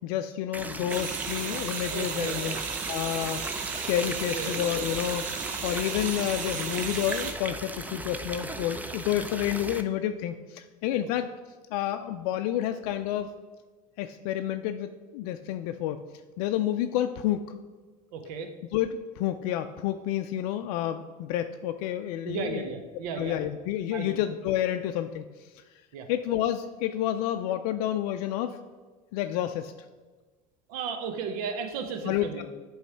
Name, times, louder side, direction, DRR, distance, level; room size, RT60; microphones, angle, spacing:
voice 1, 0.0-2.5 2.9-11.3 11.7-13.3 14.0-16.0 16.4-17.4 18.7-22.7 23.2-25.6 26.1-28.6 29.1-29.7 32.0-32.4, left 11 dB, 75° left, 8 dB, 0.4 m, -30 dB
sound 1, 0.5-9.8, right 2 dB, 10° right, 0.5 m, -37 dB
sound 2, 0.9-7.3, right 6 dB, 45° right, 0.8 m, -35 dB
voice 2, 1.9-2.6 4.0-4.6 11.0-11.1 18.1-18.5 22.3-23.4 23.9-24.1 25.9-26.1 30.7-32.4, right 6 dB, 80° right, 7 dB, 0.7 m, -35 dB
8.0 x 3.1 x 5.6 m, 1.3 s
supercardioid pair, 95°, 19 cm